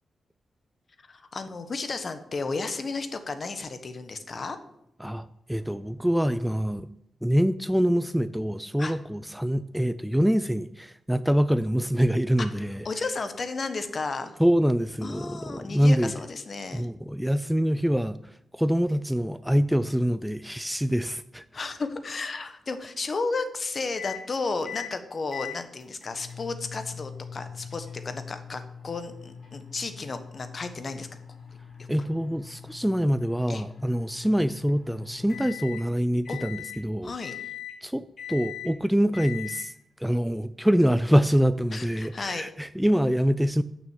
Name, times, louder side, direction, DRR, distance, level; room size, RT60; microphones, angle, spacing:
voice 1, 1.1-4.6 8.8-8.9 12.4-12.5 12.8-14.4 15.0-16.9 21.5-31.1 33.5-33.6 36.3-36.4 37.0-37.3 41.7-42.5, left 3 dB, 45° left, 10 dB, 1.0 m, -33 dB
voice 2, 5.0-6.9 7.2-12.9 14.4-16.1 16.7-21.4 31.9-37.1 37.8-39.7 40.0-43.6, equal, 5° right, 13 dB, 0.3 m, -25 dB
sound 1, 24.0-24.2 24.6-24.9 25.3-35.8 36.2-36.8 37.2-37.8 38.2-38.7 39.1-39.7, left 9 dB, 65° left, 2.3 m, -41 dB
6.4 x 6.1 x 7.2 m, 0.78 s
cardioid pair, 70°, 0 cm